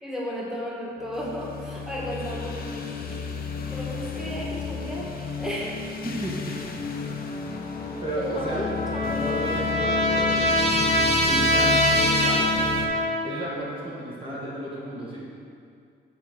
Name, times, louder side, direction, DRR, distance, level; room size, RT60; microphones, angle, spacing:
voice 1, 0.0-3.1 3.7-5.8 8.3-9.4, equal, ahead, -5 dB, 1.7 m, -34 dB
sound 1, 1.0-12.9, left 5 dB, 50° left, 0.8 m, -31 dB
voice 2, 6.0-6.7 7.2-7.3 7.8-8.7 9.2-10.9 11.3-12.4 13.2-15.3, right 1 dB, 25° right, -6 dB, 1.4 m, -33 dB
Trumpet, 8.3-13.5, equal, 30° left, 1.1 m, -24 dB
7.5 x 3.6 x 5.9 m, 2.3 s
cardioid pair, 90°, 20 cm